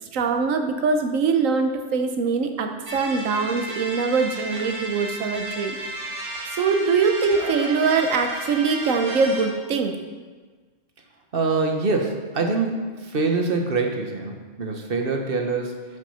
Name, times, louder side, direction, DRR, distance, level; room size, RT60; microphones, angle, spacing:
voice 1, 0.1-6.2 6.5-9.9, right 4 dB, 90° right, 5 dB, 1.2 m, -23 dB
sound 1, 2.9-9.4, right 1 dB, 70° right, 2.9 m, -33 dB
voice 2, 11.3-15.8, right 3 dB, 50° right, 3 dB, 1.2 m, -25 dB
9.2 x 6.2 x 5.6 m, 1.4 s
omnidirectional pair, 1.3 m